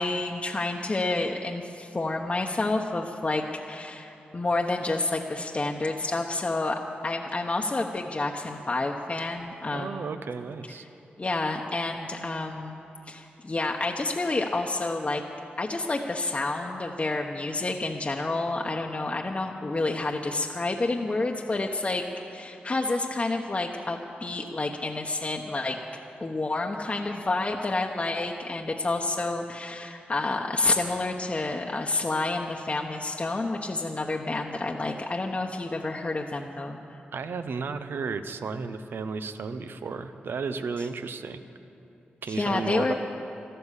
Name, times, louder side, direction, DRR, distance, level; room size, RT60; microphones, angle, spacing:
voice 1, 0.0-10.1 11.2-12.8 13.1-15.2 15.6-22.1 22.3-25.8 26.2-36.8 42.3-42.9, left 2 dB, 35° left, 1 dB, 1.0 m, -29 dB
voice 2, 9.7-10.8 37.1-41.4 42.2-42.9, right 5 dB, 70° right, 10 dB, 0.8 m, -33 dB
13.0 x 12.5 x 8.2 m, 3.0 s
cardioid pair, 55°, 4 cm